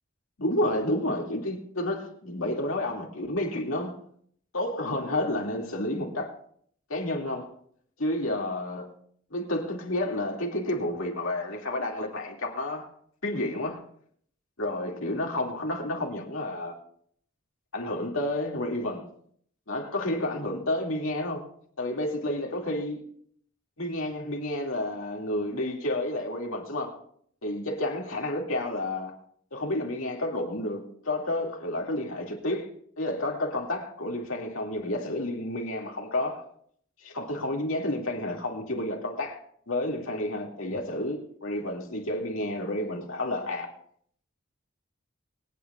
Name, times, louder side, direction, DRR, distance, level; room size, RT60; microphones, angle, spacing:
voice 1, 0.4-3.9 4.5-6.3 6.9-7.5 8.0-8.9 9.3-12.9 13.2-13.8 14.6-16.8 17.7-19.1 19.7-21.5 21.8-23.0 23.8-27.0 27.4-29.1 29.5-32.7 33.0-36.5 37.0-39.4 39.7-43.7, left 1 dB, 75° left, 2.4 m, -30 dB
25.0 x 9.4 x 2.5 m
head